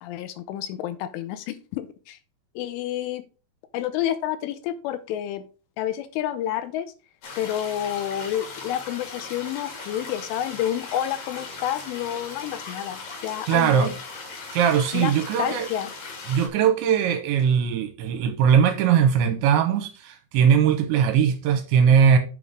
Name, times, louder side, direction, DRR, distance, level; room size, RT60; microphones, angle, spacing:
voice 1, 0.0-2.2 2.6-3.2 3.7-5.4 5.8-6.9 7.4-14.0 14.9-15.1 15.4-15.9, left 11 dB, 80° left, 3.1 m, -29 dB
sound 1, 7.2-16.5, left 4 dB, 50° left, 3.6 m, -38 dB
voice 2, 13.5-13.9 14.5-15.7 16.3-22.2, right 7 dB, 75° right, 2.9 m, -20 dB
8.5 x 6.9 x 3.6 m
omnidirectional pair, 5.9 m